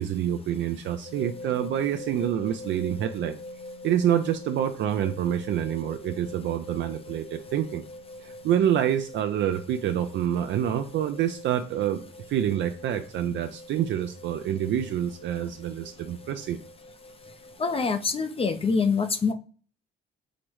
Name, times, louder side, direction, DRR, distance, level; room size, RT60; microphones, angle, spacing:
voice 1, 0.0-3.3 3.8-7.8 8.2-12.0 12.3-16.6, right 10 dB, 70° right, 7 dB, 0.4 m, -27 dB
sound 1, 1.0-17.9, left 1 dB, 75° left, 1.1 m, -44 dB
voice 2, 17.6-19.3, left 5 dB, 30° left, 8 dB, 0.4 m, -25 dB
4.9 x 2.0 x 4.5 m, 0.40 s
cardioid pair, 90°, 20 cm